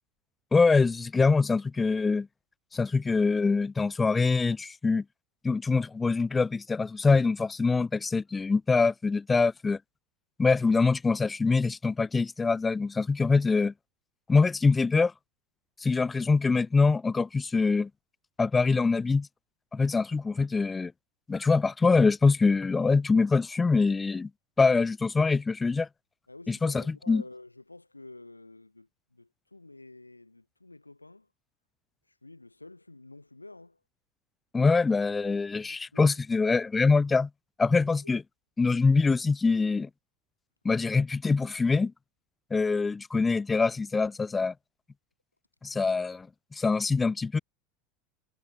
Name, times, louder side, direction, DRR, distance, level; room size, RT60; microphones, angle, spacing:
voice 1, 0.5-2.3 2.7-5.0 5.4-9.8 10.4-13.7 14.3-15.1 15.8-17.9 18.4-19.3 19.7-20.9 21.3-24.3 24.6-25.9 26.5-27.2 34.5-37.3 37.6-38.2 38.6-39.9 40.6-41.9 42.5-44.5 45.6-47.4, left 4 dB, 15° left, 0.3 m, -24 dB
voice 2, 26.3-31.3 32.2-33.8 35.7-36.2 38.0-38.1, left 2 dB, 85° left, 7.2 m, -49 dB
figure-of-eight pair, 75°, 0 cm